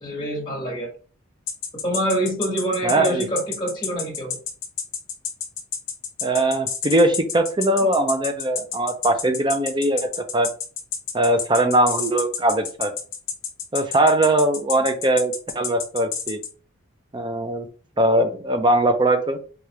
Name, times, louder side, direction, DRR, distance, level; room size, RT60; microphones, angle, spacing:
voice 1, 0.0-0.9 1.8-4.4, right 1 dB, 20° left, -3 dB, 1.5 m, -26 dB
sound 1, 1.5-16.5, left 8 dB, 60° left, 0.9 m, -29 dB
voice 2, 2.8-3.3 6.2-10.5 11.1-12.9 13.7-16.4 17.1-17.7 18.0-19.4, right 1 dB, 20° right, 7 dB, 0.5 m, -20 dB
4.8 x 2.4 x 2.9 m, 0.39 s
head